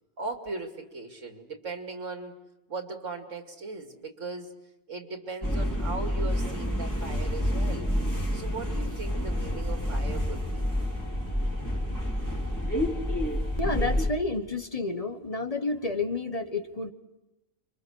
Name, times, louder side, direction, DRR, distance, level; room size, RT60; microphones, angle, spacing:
voice 1, 0.2-2.3 2.7-4.5 4.9-7.9 8.3-10.7, right 3 dB, 85° right, 4 dB, 2.9 m, -38 dB
sound 1, 5.4-14.1, equal, 15° left, 3.8 m, -28 dB
voice 2, 13.6-16.9, left 3 dB, 30° left, 8 dB, 1.3 m, -30 dB
30.0 x 24.5 x 6.4 m, 0.96 s
omnidirectional pair, 1.3 m